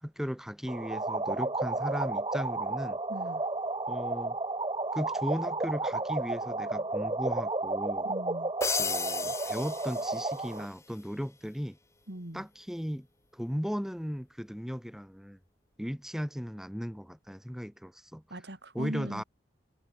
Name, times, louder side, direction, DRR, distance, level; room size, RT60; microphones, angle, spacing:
voice 1, 0.0-3.0 3.9-4.4 4.9-8.1 8.8-11.8 12.3-13.1 13.3-15.4 15.8-18.2 18.7-19.2, equal, ahead, 2.9 m, -36 dB
sound 1, 0.7-10.7, right 2 dB, 25° right, 0.8 m, -32 dB
voice 2, 3.1-3.4 8.0-8.5 12.1-12.4 18.3-19.2, right 1 dB, 65° right, 2.9 m, -40 dB
sound 2, 8.6-10.7, left 4 dB, 15° left, 4.7 m, -34 dB
head